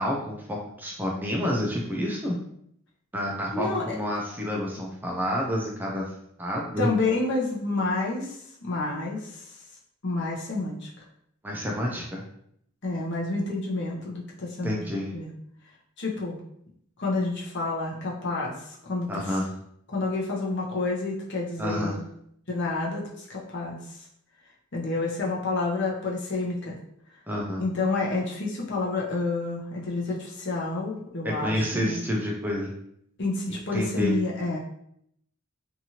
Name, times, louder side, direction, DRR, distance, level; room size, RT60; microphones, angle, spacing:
voice 1, 0.0-2.4 3.1-6.1 6.4-6.9 11.4-12.2 14.6-15.1 19.1-19.5 21.6-22.0 27.3-27.6 31.4-32.7 33.5-34.1, equal, 10° right, -2 dB, 0.3 m, -29 dB
voice 2, 3.5-4.0 6.8-9.6 10.0-11.0 12.8-14.8 15.1-15.3 16.0-16.4 17.0-19.4 19.9-22.0 22.5-24.0 24.7-26.8 27.6-32.0 33.2-34.6, left 3 dB, 55° left, -3 dB, 0.7 m, -29 dB
2.8 x 2.5 x 2.8 m, 0.72 s
head